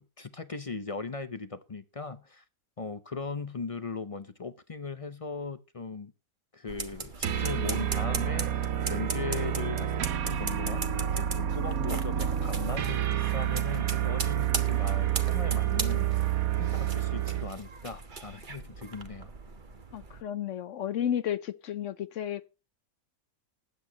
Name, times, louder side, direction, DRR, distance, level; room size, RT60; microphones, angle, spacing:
voice 1, 0.0-2.4 2.8-6.1 6.5-19.3, left 4 dB, 35° left, 0.5 m, -39 dB
sound 1, 6.7-20.2, right 4 dB, 35° right, 1.3 m, -39 dB
sound 2, 7.2-17.6, right 11 dB, 75° right, 1.4 m, -29 dB
voice 2, 19.9-22.4, left 10 dB, 60° left, 1.0 m, -32 dB
20.0 x 8.4 x 2.9 m
omnidirectional pair, 1.5 m